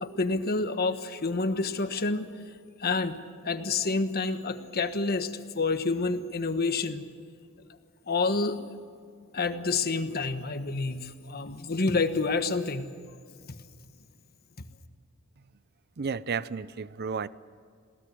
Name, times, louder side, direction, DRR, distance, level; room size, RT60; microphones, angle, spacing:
voice 1, 0.0-2.4 2.8-3.2 3.4-7.0 8.1-8.6 9.3-12.8 13.5-13.6, left 3 dB, 50° left, 9 dB, 1.3 m, -28 dB
voice 2, 16.0-17.3, right 5 dB, 50° right, 17 dB, 0.5 m, -32 dB
22.5 x 17.0 x 7.7 m, 2.2 s
head